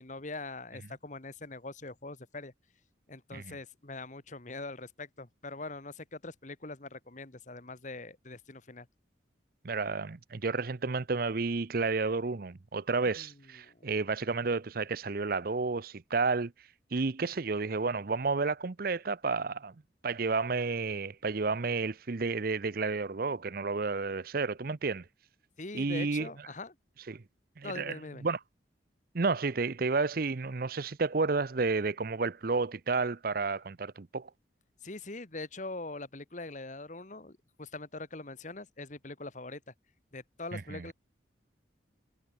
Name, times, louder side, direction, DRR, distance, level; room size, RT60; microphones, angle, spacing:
voice 1, 0.0-2.5 3.1-8.9 13.0-13.9 25.6-26.7 27.6-28.2 34.8-39.7 40.1-40.9, left 2 dB, 40° left, 1.6 m, -43 dB
voice 2, 9.6-16.5 16.9-19.7 20.0-25.0 25.7-26.3 27.1-27.2 27.6-28.0 28.2-28.4 29.1-34.3 40.5-40.9, right 4 dB, 50° right, 0.7 m, -31 dB
head